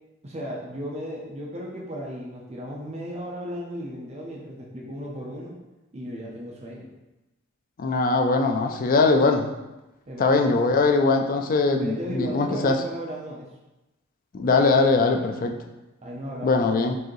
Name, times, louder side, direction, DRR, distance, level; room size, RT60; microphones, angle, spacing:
voice 1, 0.2-5.6 5.9-6.9 10.1-10.7 11.8-13.5 15.1-15.3 16.0-16.8, equal, 30° right, -2 dB, 0.6 m, -35 dB
voice 2, 7.8-9.5 10.2-12.8 14.3-15.6 16.4-17.0, left 3 dB, 40° left, 5 dB, 0.4 m, -21 dB
4.7 x 2.7 x 3.0 m, 1.0 s
head